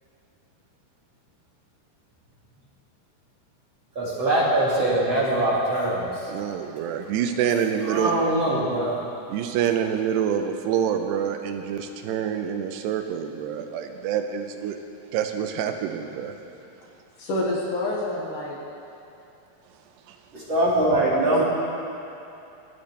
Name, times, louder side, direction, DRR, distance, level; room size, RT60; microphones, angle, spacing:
voice 1, 3.9-6.3 7.8-8.9 20.3-21.4, right 1 dB, 35° right, -7 dB, 2.4 m, -22 dB
voice 2, 6.3-8.1 9.3-14.8 15.1-16.4 20.1-20.2, right 8 dB, 90° right, 6 dB, 2.8 m, -26 dB
voice 3, 17.2-18.6 21.3-21.4, left 1 dB, 60° left, -4 dB, 2.7 m, -28 dB
26.0 x 8.8 x 3.3 m, 2.9 s
omnidirectional pair, 4.8 m